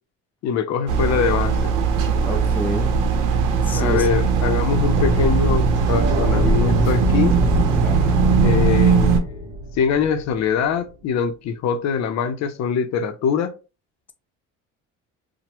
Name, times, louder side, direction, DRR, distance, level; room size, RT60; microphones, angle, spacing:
voice 1, 0.4-1.7 3.7-7.4 8.4-9.5 9.7-13.5, left 7 dB, 55° left, 0.6 m, -23 dB
sound 1, 0.9-9.2, right 5 dB, 75° right, 0.7 m, -19 dB
voice 2, 2.2-3.0 3.6-4.1 7.8-8.4, left 1 dB, 5° left, 0.4 m, -28 dB
sound 2, 4.9-10.9, equal, 35° right, 1.1 m, -28 dB
2.9 x 2.1 x 2.9 m
supercardioid pair, 90°, 32 cm